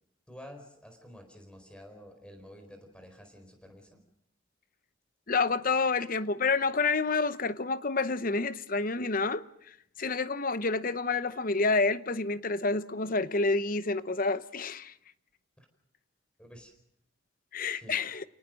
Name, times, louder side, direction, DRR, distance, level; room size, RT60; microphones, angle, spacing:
voice 1, 0.3-4.0 15.6-15.7 16.4-16.7 17.7-18.0, equal, 5° left, 4.5 m, -50 dB
voice 2, 5.3-14.9 17.5-18.2, left 3 dB, 40° left, 0.8 m, -29 dB
29.5 x 19.0 x 6.5 m
head